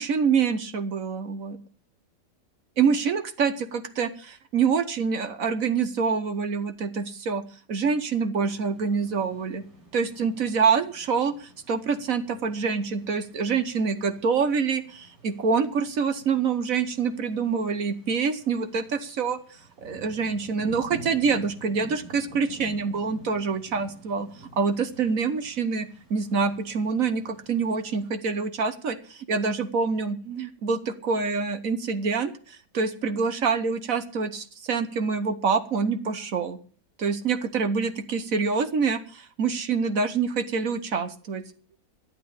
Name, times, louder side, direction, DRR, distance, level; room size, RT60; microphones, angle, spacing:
voice 1, 0.0-1.6 2.8-7.4 7.7-9.6 9.9-19.4 19.8-24.3 24.6-36.6 37.0-41.4, right 5 dB, 55° right, 10 dB, 1.4 m, -26 dB
sound 1, 8.5-28.1, right 1 dB, 90° right, 4.8 m, -49 dB
12.5 x 8.6 x 8.6 m, 0.42 s
omnidirectional pair, 1.8 m